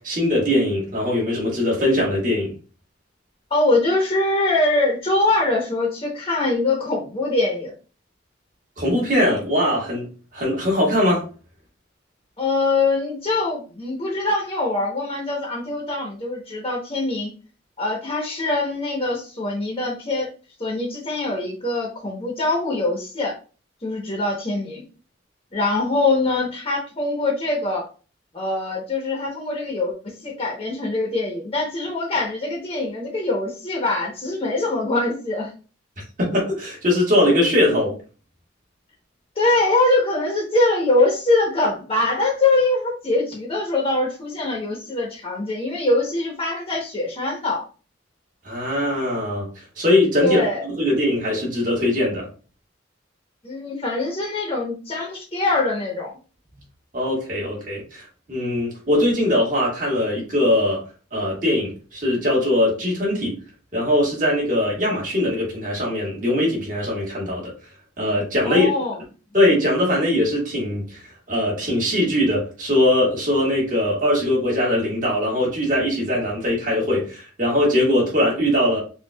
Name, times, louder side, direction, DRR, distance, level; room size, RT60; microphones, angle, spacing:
voice 1, 0.0-2.5 8.8-10.1 10.3-11.3 36.0-38.0 48.4-52.3 56.9-60.8 61.1-63.4 63.7-67.5 68.0-68.7 69.3-71.0 71.3-78.8, left 1 dB, 40° right, 1.5 m, -21 dB
voice 2, 3.5-7.7 12.4-17.3 17.8-20.3 20.6-23.3 23.8-24.9 25.5-27.9 28.3-35.5 39.4-47.6 50.2-50.6 53.4-56.1 68.4-69.0, left 2 dB, 30° left, 0.8 m, -23 dB
5.3 x 2.3 x 2.2 m
head